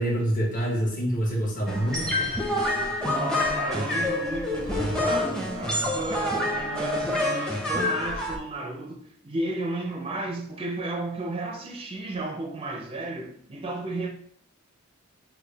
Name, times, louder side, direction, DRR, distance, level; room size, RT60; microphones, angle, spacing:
voice 1, 0.0-2.3, right 1 dB, 40° left, 1.4 m, -26 dB
sound 1, 1.7-8.4, left 1 dB, 5° left, 0.8 m, -27 dB
voice 2, 3.0-14.1, right 2 dB, 25° right, 0.5 m, -33 dB
6.4 x 2.2 x 3.4 m
head